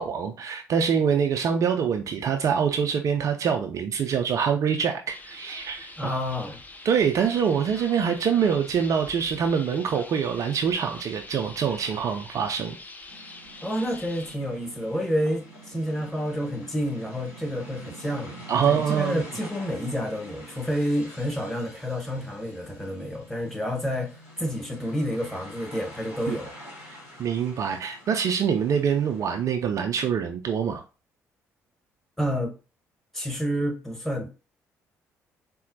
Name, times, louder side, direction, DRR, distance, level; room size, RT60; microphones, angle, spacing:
voice 1, 0.0-6.1 6.8-12.7 18.5-19.2 26.3-26.4 27.2-30.8, right 7 dB, 45° right, 0.4 m, -25 dB
sound 1, 5.1-14.4, left 3 dB, 20° left, 0.5 m, -44 dB
voice 2, 6.0-6.6 13.6-26.5 32.2-32.5 33.1-34.3, equal, 5° left, 1.1 m, -29 dB
sound 2, 13.1-29.5, right 1 dB, 75° left, 1.1 m, -46 dB
4.0 x 2.0 x 2.6 m
figure-of-eight pair, 45°, 8 cm